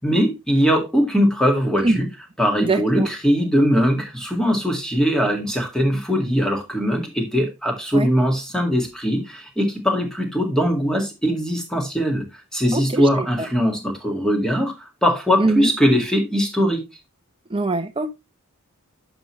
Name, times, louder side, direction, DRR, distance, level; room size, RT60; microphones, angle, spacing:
voice 1, 0.0-2.1 2.4-12.2 12.5-16.8, equal, 5° left, 1.9 m, -21 dB
voice 2, 2.6-3.1 7.9-8.1 12.7-13.0 13.4-13.5 15.4-15.7 17.5-18.1, right 2 dB, 25° right, 0.8 m, -22 dB
9.5 x 6.2 x 3.1 m
head